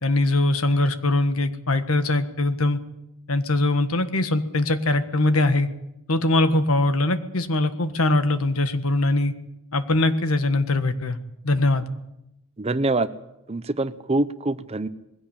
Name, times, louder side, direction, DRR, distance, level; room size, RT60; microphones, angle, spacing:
voice 1, 0.0-2.8 3.3-5.7 6.1-9.3 9.7-11.2 11.4-11.8, left 2 dB, 85° left, 10 dB, 1.5 m, -22 dB
voice 2, 12.6-13.1 13.5-14.9, right 2 dB, 30° right, 13 dB, 0.8 m, -24 dB
21.0 x 16.5 x 8.8 m, 0.87 s
head